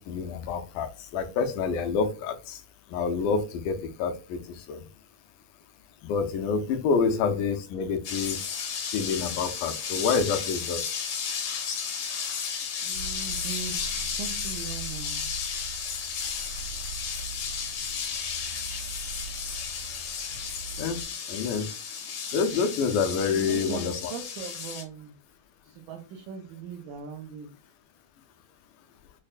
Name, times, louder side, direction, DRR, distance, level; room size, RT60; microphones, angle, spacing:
voice 1, 0.0-2.6 2.9-4.8 6.0-8.4 8.9-10.8 20.8-21.0 21.3-21.7 22.3-24.1, left 5 dB, 85° left, 5 dB, 2.2 m, -28 dB
sound 1, 8.0-24.8, left 6 dB, 70° left, 1.6 m, -33 dB
voice 2, 12.8-15.3 23.3-25.1 25.6-27.5, right 6 dB, 80° right, -2 dB, 2.2 m, -39 dB
sound 2, 12.9-21.1, right 7 dB, 60° right, 1.5 m, -42 dB
6.4 x 2.2 x 2.4 m, 0.33 s
omnidirectional pair, 3.5 m